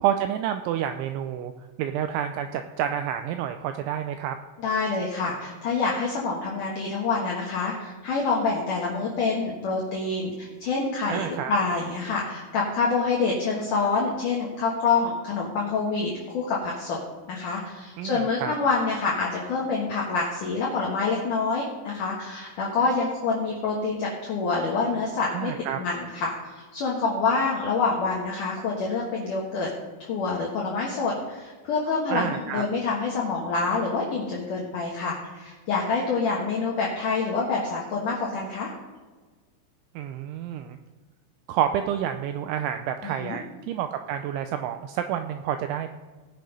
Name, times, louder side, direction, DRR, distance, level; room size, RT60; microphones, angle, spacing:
voice 1, 0.0-1.5 1.8-4.4 11.1-11.5 18.0-18.6 25.3-25.8 32.1-32.6 40.0-40.8 41.5-45.9, right 10 dB, 85° right, 8 dB, 2.7 m, -29 dB
voice 2, 4.6-17.0 17.3-25.5 25.8-29.7 30.1-38.7 43.0-43.4, left 4 dB, 70° left, -3 dB, 2.0 m, -27 dB
18.0 x 6.7 x 5.3 m, 1.4 s
omnidirectional pair, 5.9 m